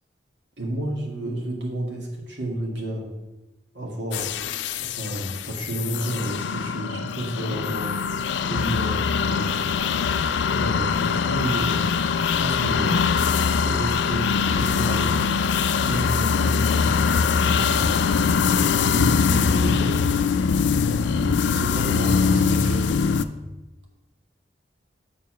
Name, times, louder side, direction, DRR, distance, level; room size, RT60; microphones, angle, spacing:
voice 1, 0.6-3.1 3.7-4.4 4.8-7.9 8.4-9.7 10.5-12.1 12.4-13.0 13.6-15.2 15.8-18.1 18.7-20.1 21.1-23.1, right 1 dB, 85° right, -1 dB, 1.9 m, -31 dB
sound 1, 4.1-23.2, left 6 dB, 80° left, 0.4 m, -22 dB
6.8 x 4.7 x 6.1 m, 1.1 s
head